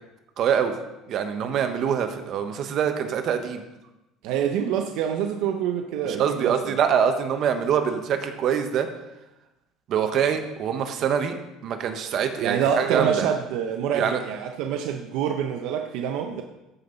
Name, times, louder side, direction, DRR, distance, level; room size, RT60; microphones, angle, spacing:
voice 1, 0.4-0.7 1.1-3.6 6.1-8.9 9.9-11.4 11.6-13.2 13.9-14.2, right 8 dB, 50° right, 7 dB, 1.1 m, -24 dB
voice 2, 4.2-6.8 12.4-16.4, right 8 dB, 75° right, 5 dB, 0.7 m, -26 dB
13.5 x 5.5 x 3.9 m, 0.96 s
cardioid pair, 125°, 0 cm